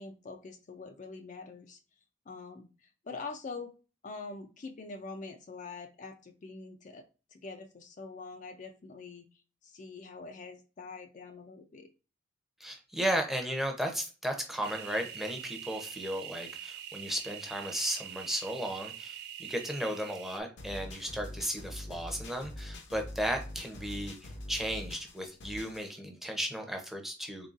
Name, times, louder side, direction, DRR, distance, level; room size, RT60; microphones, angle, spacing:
voice 1, 0.0-1.8 2.3-3.7 4.0-7.0 7.3-11.9, left 4 dB, 40° left, 5 dB, 0.4 m, -44 dB
voice 2, 12.6-27.5, equal, ahead, 3 dB, 0.6 m, -35 dB
sound 1, 14.6-20.4, right 9 dB, 55° right, 0.4 m, -44 dB
sound 2, 20.6-25.9, left 1 dB, 65° left, 0.7 m, -44 dB
3.9 x 3.6 x 2.4 m, 0.34 s
head